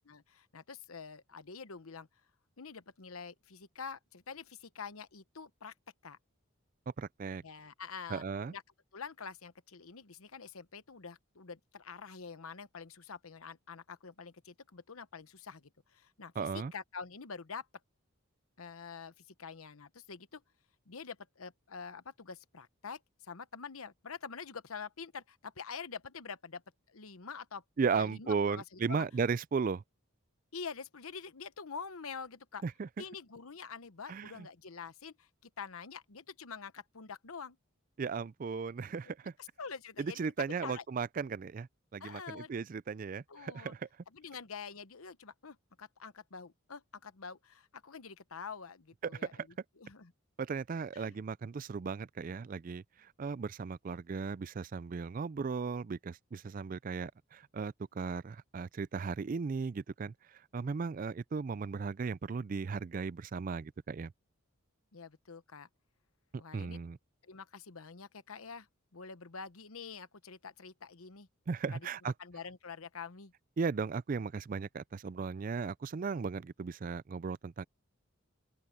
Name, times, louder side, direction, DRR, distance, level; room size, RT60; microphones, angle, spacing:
voice 1, 0.0-2.1 2.6-5.7 6.0-6.2 7.4-8.2 8.5-8.6 8.9-17.7 18.6-20.4 20.9-26.6 26.9-27.6 27.9-29.1 30.5-32.6 33.0-37.6 39.4-40.8 42.0-42.5 43.3-43.7 44.1-49.5 49.8-50.1 50.9-51.2 64.9-65.7 66.4-66.8 67.2-68.7 68.9-71.3 71.7-73.3, left 5 dB, 85° left, 1.0 m, -46 dB
voice 2, 7.0-7.4 8.1-8.5 16.4-16.7 27.8-29.8 32.6-32.9 34.1-34.3 38.0-39.3 40.0-43.8 49.0-49.2 50.4-60.1 60.5-64.1 66.5-67.0 71.5-72.1 73.6-77.6, right 5 dB, 40° right, 0.3 m, -36 dB
open air
head